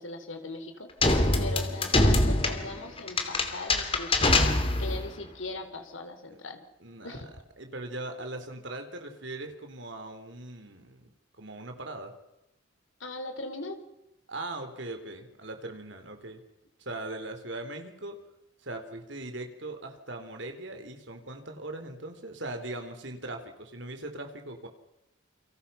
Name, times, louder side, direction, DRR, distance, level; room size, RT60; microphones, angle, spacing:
voice 1, 0.0-4.5 4.8-6.6 7.0-7.3 13.0-13.8, left 2 dB, 80° left, 7 dB, 3.8 m, -39 dB
sound 1, 1.0-5.1, left 2 dB, 25° left, 2.8 m, -24 dB
voice 2, 6.8-7.3 7.6-11.1 11.4-12.1 14.3-16.4 16.8-18.2 18.6-24.7, right 2 dB, 65° right, 5 dB, 3.8 m, -40 dB
29.0 x 25.5 x 5.8 m, 0.90 s
head